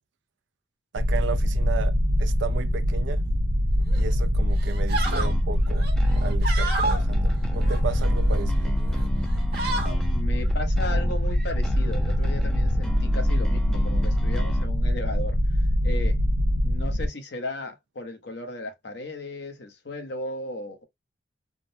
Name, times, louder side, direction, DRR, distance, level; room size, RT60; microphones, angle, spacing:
voice 1, 0.9-3.2 3.9-5.9 6.2-8.8, right 6 dB, 70° right, 0.4 m, -34 dB
sound 1, 1.0-17.1, equal, 30° right, 0.7 m, -23 dB
sound 2, 3.9-4.1 4.6-5.3 5.8-7.0 7.6-8.4 8.9-9.1 9.3-10.0, right 3 dB, 55° right, 0.9 m, -31 dB
sound 3, 5.1-14.7, left 1 dB, 5° left, 0.5 m, -36 dB
voice 2, 10.1-15.4 15.8-16.2 16.6-20.9, left 1 dB, 60° left, 0.8 m, -35 dB
3.6 x 2.0 x 2.6 m
head